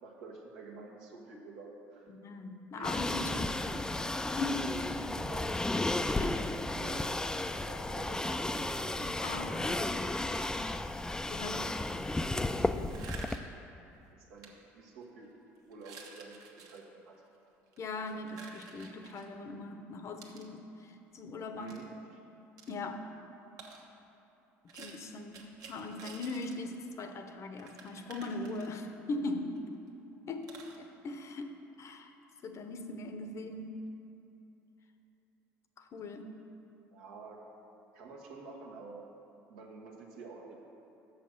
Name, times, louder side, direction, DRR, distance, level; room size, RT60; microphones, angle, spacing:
voice 1, 0.0-2.1 2.7-3.4 5.1-5.7 6.7-10.8 11.4-11.6 14.1-15.3 15.7-17.2 21.5-21.9 36.9-37.4 37.9-39.0 39.5-40.5, right 3 dB, 85° right, -1 dB, 1.2 m, -49 dB
voice 2, 2.1-3.8 4.4-5.2 6.2-6.6 9.2-9.8 11.3-11.8 12.7-13.0 17.8-21.7 22.7-23.2 24.8-30.0 30.3-32.1 32.4-33.9 35.8-36.5, left 2 dB, 45° left, 7 dB, 0.7 m, -40 dB
sound 1, 2.8-13.4, left 2 dB, 10° left, 0.3 m, -33 dB
sound 2, 12.8-13.6 14.4-14.5 15.0-15.2 15.7-16.8 17.7-19.3 20.2-20.5 21.7-21.8 22.6-22.8 23.6-23.9 24.7-26.6 26.9-27.0 27.2-27.3 27.6-29.0 29.5-29.6 29.9-30.0 30.4-30.8, right 4 dB, 65° right, 1.1 m, -50 dB
6.4 x 5.7 x 6.5 m, 2.8 s
supercardioid pair, 75°, 7 cm